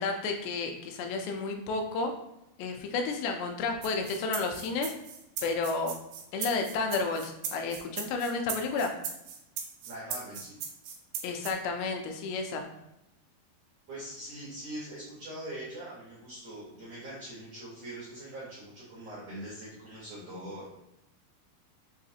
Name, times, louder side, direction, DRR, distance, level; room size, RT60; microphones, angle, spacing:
voice 1, 0.0-2.1 2.6-4.9 5.4-6.0 6.3-8.9 11.2-12.7 20.2-20.4, left 4 dB, 85° left, 4 dB, 2.5 m, -31 dB
sound 1, 3.8-11.5, right 7 dB, 90° right, 2.5 m, -38 dB
voice 2, 9.8-10.6 13.9-20.7, right 1 dB, 70° right, -8 dB, 1.5 m, -42 dB
5.9 x 2.4 x 2.7 m, 0.87 s
omnidirectional pair, 4.3 m